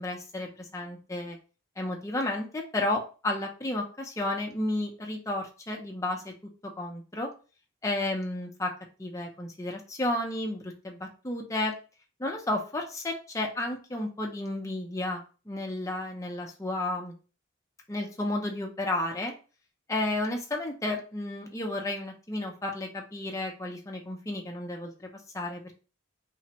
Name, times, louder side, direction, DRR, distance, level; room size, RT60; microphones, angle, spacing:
voice 1, 0.0-1.4 1.8-6.3 6.6-7.3 7.8-8.7 9.0-11.7 12.2-17.1 17.9-19.3 19.9-25.8, left 1 dB, 15° left, 1 dB, 0.5 m, -32 dB
3.3 x 2.1 x 2.8 m, 0.35 s
head